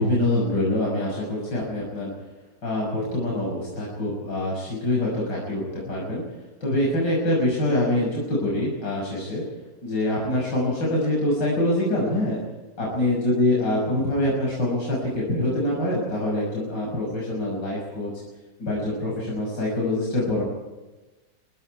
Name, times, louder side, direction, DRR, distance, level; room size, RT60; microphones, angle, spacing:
voice 1, 0.0-2.1 2.6-6.2 6.6-9.4 9.8-12.4 12.8-18.1 18.6-20.4, left 1 dB, 75° left, -4 dB, 7.0 m, -25 dB
26.0 x 22.0 x 4.8 m, 1.1 s
omnidirectional pair, 1.9 m